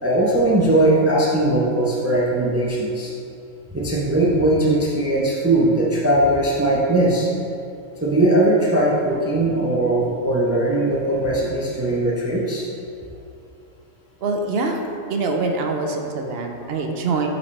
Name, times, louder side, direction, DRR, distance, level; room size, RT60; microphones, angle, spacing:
voice 1, 0.0-3.1 3.7-7.3 8.0-12.7, right 1 dB, 15° right, -5 dB, 0.5 m, -19 dB
voice 2, 14.2-14.8 15.1-17.3, right 3 dB, 60° right, 3 dB, 0.8 m, -24 dB
8.7 x 4.0 x 3.2 m, 2.6 s
omnidirectional pair, 1.3 m